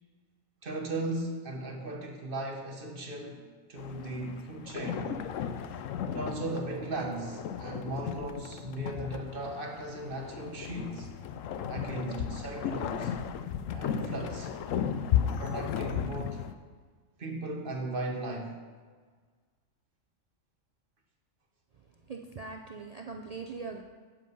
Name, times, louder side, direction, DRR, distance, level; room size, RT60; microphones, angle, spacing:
voice 1, 0.6-5.1 6.1-11.1 11.7-13.1 13.7-14.5 15.2-16.4 17.2-18.6, right 2 dB, 40° right, 2 dB, 1.3 m, -37 dB
sound 1, 3.8-16.5, left 8 dB, 75° left, 0.9 m, -35 dB
voice 2, 22.1-23.8, right 4 dB, 60° right, 2 dB, 0.4 m, -41 dB
8.8 x 7.6 x 5.4 m, 1.5 s
omnidirectional pair, 1.4 m